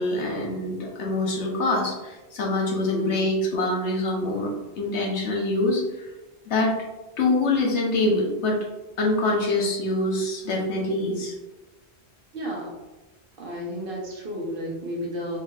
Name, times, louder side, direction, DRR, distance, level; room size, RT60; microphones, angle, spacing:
voice 1, 0.0-6.1 6.5-6.7 7.2-8.7 9.0-11.3, left 2 dB, 80° left, -1 dB, 1.2 m, -25 dB
voice 2, 2.8-3.2 12.3-12.7 13.4-15.4, equal, 55° right, -2 dB, 1.2 m, -32 dB
4.3 x 3.7 x 2.4 m, 1.1 s
omnidirectional pair, 1.1 m